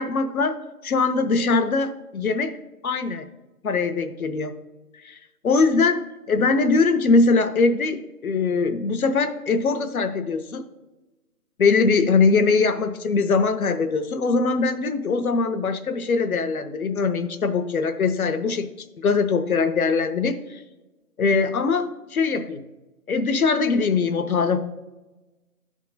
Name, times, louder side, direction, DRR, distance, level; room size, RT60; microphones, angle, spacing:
voice 1, 0.0-2.6 2.8-3.3 3.6-4.6 5.0-5.2 5.4-6.0 6.3-10.6 11.6-18.7 19.0-20.6 21.2-22.6 23.1-24.6, left 4 dB, 65° left, 9 dB, 0.8 m, -22 dB
11.0 x 3.7 x 3.9 m, 1.1 s
figure-of-eight pair, 150°, 45 cm